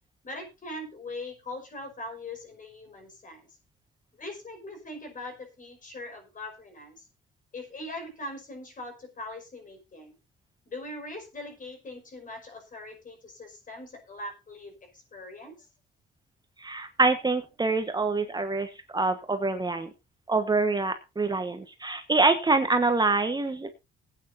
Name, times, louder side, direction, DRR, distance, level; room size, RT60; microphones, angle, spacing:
voice 1, 0.2-3.5 4.1-7.1 7.5-10.2 10.7-15.7, left 2 dB, 40° left, 5 dB, 5.3 m, -41 dB
voice 2, 16.6-19.9 20.3-23.7, right 3 dB, 20° right, 7 dB, 1.3 m, -25 dB
20.0 x 9.0 x 2.7 m, 0.26 s
cardioid pair, 90°, 20 cm